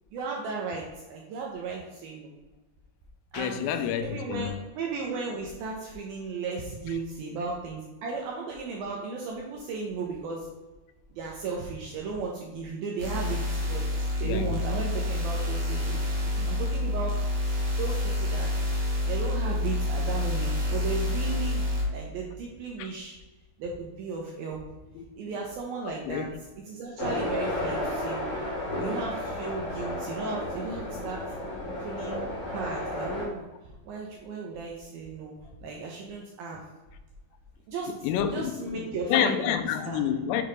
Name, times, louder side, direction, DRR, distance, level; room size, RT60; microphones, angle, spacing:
voice 1, 0.1-2.3 3.3-3.6 4.0-10.5 11.1-16.0 16.5-17.3 17.8-18.5 19.1-21.7 21.9-23.2 23.6-24.6 25.2-26.2 26.7-28.4 28.8-31.2 31.8-32.3 32.5-33.4 33.9-35.3 35.6-36.6 37.7-37.9 38.3-39.6 39.8-40.1, right 4 dB, 85° right, 2.1 m, -35 dB
voice 2, 3.3-4.5 14.2-14.6 16.4-16.5 22.8-22.9 25.0-25.4 26.1-26.3 37.9-40.4, left 9 dB, 85° left, 2.7 m, -29 dB
sound 1, 13.0-21.8, left 1 dB, 55° right, 1.7 m, -28 dB
sound 2, 27.0-33.2, left 1 dB, 25° left, 1.0 m, -32 dB
7.6 x 3.3 x 5.1 m
omnidirectional pair, 5.1 m